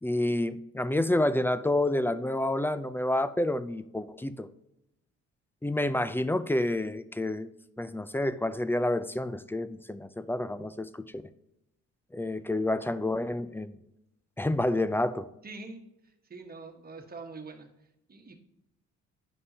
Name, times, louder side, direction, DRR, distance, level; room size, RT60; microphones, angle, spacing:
voice 1, 0.0-4.5 5.6-7.5 7.8-10.9 12.1-13.7 14.4-15.3, left 1 dB, 10° left, 13 dB, 0.4 m, -29 dB
voice 2, 15.4-15.8 16.3-17.7 18.1-18.3, right 3 dB, 30° right, 4 dB, 1.3 m, -44 dB
9.7 x 5.3 x 2.8 m, 0.85 s
cardioid pair, 90°, 30 cm